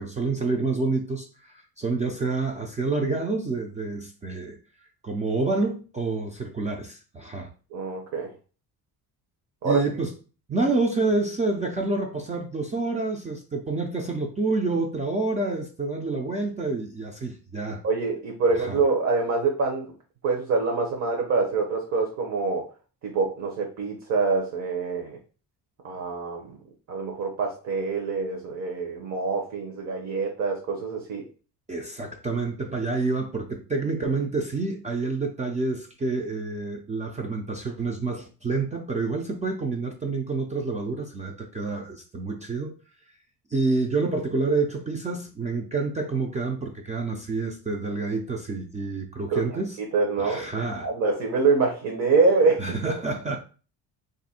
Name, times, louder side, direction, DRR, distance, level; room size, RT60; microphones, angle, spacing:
voice 1, 0.0-4.6 5.0-7.5 9.6-10.1 10.5-17.8 18.5-18.8 31.7-42.7 43.5-49.8 50.2-50.9 52.6-53.4, right 3 dB, 20° right, 1 dB, 0.4 m, -28 dB
voice 2, 7.7-8.3 9.6-9.8 17.8-19.9 20.2-22.7 23.0-25.2 25.8-26.6 26.9-31.2 49.3-49.4 49.9-52.6, right 4 dB, 50° right, 0 dB, 0.7 m, -25 dB
2.6 x 2.5 x 4.1 m, 0.37 s
cardioid pair, 125°, 36 cm